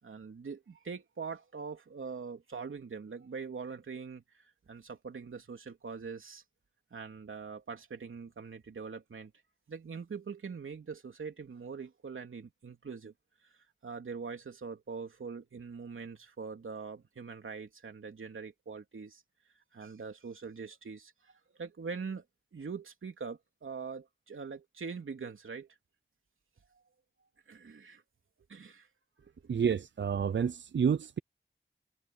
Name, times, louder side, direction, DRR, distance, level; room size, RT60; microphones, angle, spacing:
voice 1, 0.0-6.4 6.9-9.3 9.7-13.1 13.4-13.5 13.8-19.2 19.7-22.2 22.5-25.7 27.5-28.0 28.5-28.9 29.2-29.5, right 5 dB, 85° right, 3.3 m, -43 dB
voice 2, 29.5-31.2, right 7 dB, 65° right, 0.5 m, -29 dB
cardioid pair, 45°, 20 cm